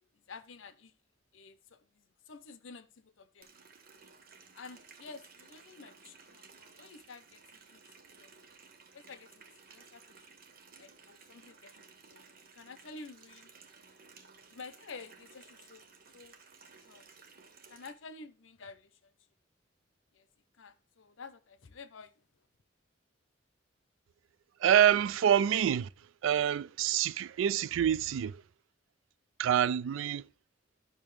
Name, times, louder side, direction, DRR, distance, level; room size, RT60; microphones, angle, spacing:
voice 1, 0.1-0.9 1.3-3.5 4.5-7.8 8.2-8.3 8.9-10.3 10.8-13.5 14.5-15.9 16.1-16.3 16.8-17.1 17.7-19.1 20.1-20.3 20.6-22.3, left 4 dB, 80° left, 0.7 m, -51 dB
Water tap faucet, 3.4-17.9, right 5 dB, 50° right, 1.0 m, -57 dB
voice 2, 24.6-25.9 26.2-28.4 29.4-30.2, right 9 dB, 85° right, 0.3 m, -26 dB
10.5 x 6.0 x 3.2 m
head